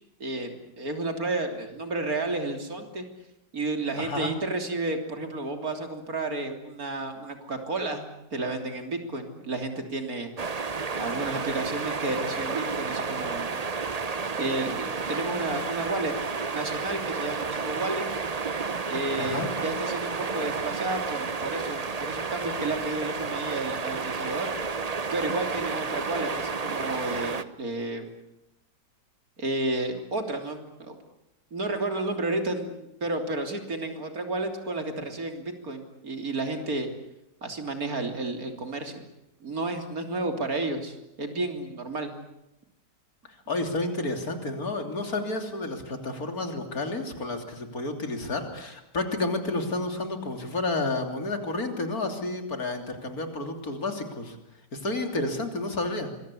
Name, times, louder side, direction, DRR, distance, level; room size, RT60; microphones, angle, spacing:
voice 1, 0.2-3.1 3.5-8.1 8.3-10.3 10.9-13.6 14.4-16.1 16.5-18.0 18.9-24.5 25.1-28.1 29.4-31.0 31.5-36.9 37.4-39.0 39.4-42.1, right 2 dB, 55° right, 5 dB, 3.7 m, -31 dB
voice 2, 4.0-4.3 19.2-19.5 43.5-54.4 54.7-56.1, left 2 dB, 55° left, 5 dB, 3.6 m, -30 dB
sound 1, 10.4-27.4, right 4 dB, 30° right, 0.8 m, -31 dB
26.0 x 22.5 x 8.5 m, 0.89 s
omnidirectional pair, 1.8 m